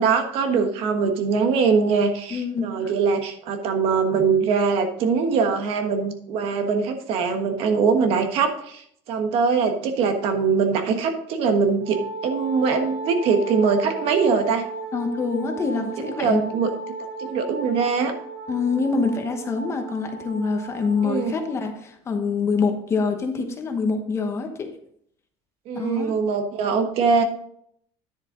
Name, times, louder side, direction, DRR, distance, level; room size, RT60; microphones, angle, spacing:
voice 1, 0.0-14.6 15.8-16.7 17.2-18.1 21.0-21.4 25.7-27.2, right 5 dB, 55° right, 6 dB, 1.3 m, -22 dB
voice 2, 2.3-2.9 14.9-16.4 18.5-24.7 25.7-26.1, left 4 dB, 25° left, 5 dB, 1.0 m, -25 dB
Wind instrument woodwind instrument, 11.8-21.8, right 3 dB, 75° right, 4.0 m, -35 dB
10.0 x 7.2 x 3.8 m, 0.68 s
cardioid pair, 170°, 12 cm